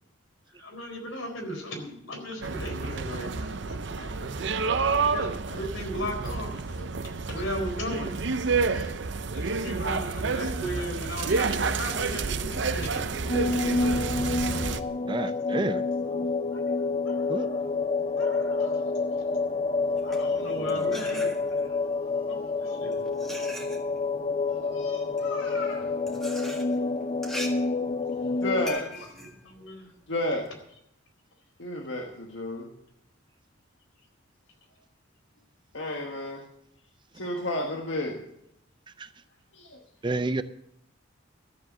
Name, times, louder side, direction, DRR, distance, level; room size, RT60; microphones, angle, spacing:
voice 1, 0.6-4.3 4.7-6.8 7.3-8.3 8.7-8.9 9.3-14.1 16.5-16.6 17.0-17.5 18.2-18.9 20.0-21.8 22.3-23.2 29.4-29.9, equal, 85° left, 2 dB, 4.2 m, -37 dB
sound 1, 2.4-14.8, right 4 dB, 60° right, 0.6 m, -29 dB
voice 2, 3.9-4.8 6.8-6.9 14.8-15.0 15.5-16.3 20.3-21.3 21.8-21.9 22.7-22.8 24.5-25.9 26.4-26.5 28.4-29.1 30.1-30.5 31.6-32.7 35.7-36.4 37.1-38.2 39.5-39.8, left 1 dB, 70° left, 1 dB, 1.6 m, -34 dB
sound 2, 13.3-28.7, left 3 dB, 30° left, 0.5 m, -28 dB
voice 3, 15.1-15.8 17.3-17.5 39.0-39.1 40.0-40.4, right 2 dB, 25° right, 12 dB, 0.4 m, -29 dB
sound 3, 19.8-21.8 22.6-30.5, equal, ahead, 1.7 m, -42 dB
13.0 x 7.8 x 7.4 m, 0.75 s
head